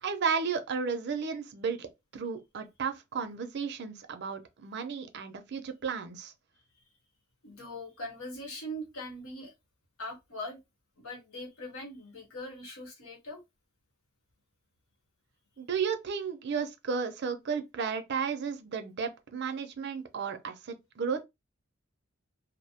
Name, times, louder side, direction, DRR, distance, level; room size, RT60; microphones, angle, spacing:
voice 1, 0.0-6.3 15.6-21.2, right 6 dB, 50° right, 0.5 m, -33 dB
voice 2, 7.4-9.5 10.0-10.6 11.0-13.4, left 1 dB, 75° left, 1.0 m, -41 dB
2.5 x 2.0 x 2.8 m
head